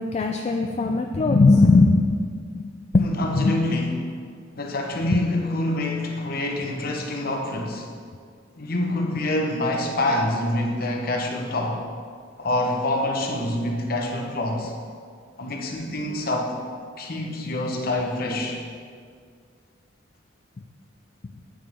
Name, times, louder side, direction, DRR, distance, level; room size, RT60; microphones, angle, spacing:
voice 1, 0.0-3.1 3.3-3.5 5.1-5.2, left 3 dB, 35° left, 4 dB, 0.3 m, -19 dB
voice 2, 3.0-4.0 4.6-7.9 8.6-11.8 12.4-14.7 15.4-16.5 17.0-18.6, left 1 dB, 50° left, 1 dB, 1.0 m, -26 dB
8.9 x 7.0 x 3.5 m, 2.1 s
head